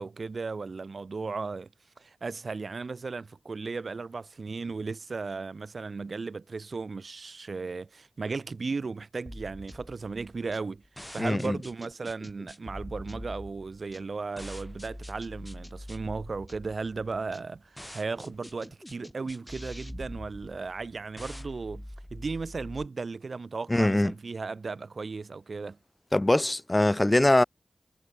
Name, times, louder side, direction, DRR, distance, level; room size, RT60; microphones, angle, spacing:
voice 1, 0.0-1.7 2.0-10.8 11.1-21.9 22.1-25.8, right 4 dB, 75° right, 0.5 m, -36 dB
sound 1, 9.3-22.9, equal, 5° left, 2.2 m, -44 dB
voice 2, 11.2-11.6 23.7-24.1 26.1-27.4, left 1 dB, 25° left, 0.4 m, -22 dB
wide cardioid pair, 60°, 0 cm